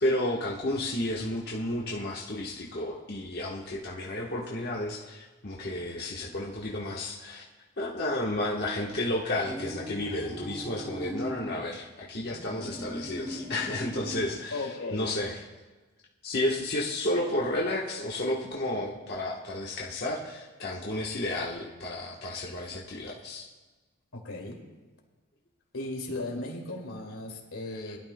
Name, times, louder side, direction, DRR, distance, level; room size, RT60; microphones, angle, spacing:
voice 1, 0.0-7.4 7.8-15.4 16.2-23.5, left 1 dB, 50° left, -4 dB, 1.2 m, -32 dB
sound 1, 9.3-11.6 12.2-14.4, equal, ahead, 2.7 m, -39 dB
voice 2, 14.5-15.1 24.1-24.6 25.7-28.0, left 2 dB, 90° left, 0 dB, 2.4 m, -36 dB
21.5 x 12.0 x 2.2 m, 1.2 s
head